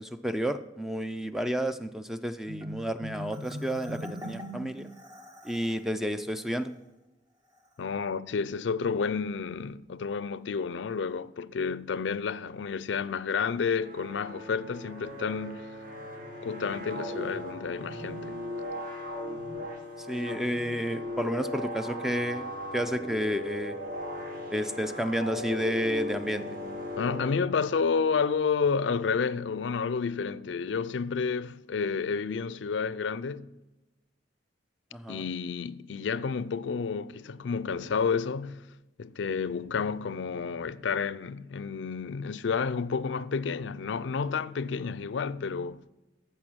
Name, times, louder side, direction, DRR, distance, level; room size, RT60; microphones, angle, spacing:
voice 1, 0.0-4.9 5.4-6.7 20.0-22.5 22.7-23.8 24.5-26.4 34.9-35.3, equal, ahead, 0.4 m, -31 dB
Marimba xylophone, 2.5-5.8, equal, 20° right, 0.8 m, -41 dB
voice 2, 7.8-15.7 16.4-18.3 27.0-33.5 35.1-38.7 39.0-45.8, left 5 dB, 85° left, 0.4 m, -30 dB
sound 1, 13.8-27.9, left 1 dB, 45° right, 1.9 m, -38 dB
14.5 x 5.6 x 6.1 m
head